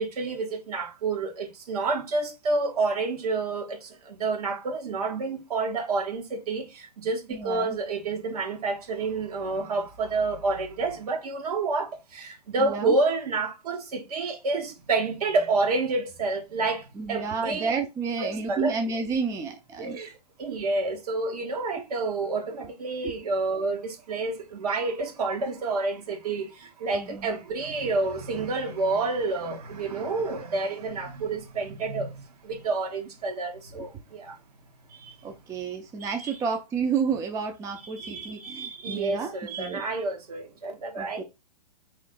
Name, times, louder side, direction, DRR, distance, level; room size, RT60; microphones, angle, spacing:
voice 1, 0.0-17.7 18.2-18.7 19.8-34.4 36.0-36.3 38.0-41.2, right 3 dB, 65° right, 1.4 m, -29 dB
voice 2, 7.3-7.8 12.6-12.9 17.0-20.0 23.0-23.1 26.9-27.4 33.8-33.9 34.9-39.8 41.0-41.2, right 5 dB, 15° right, 0.5 m, -31 dB
4.0 x 3.2 x 3.8 m
hypercardioid pair, 120°, 21 cm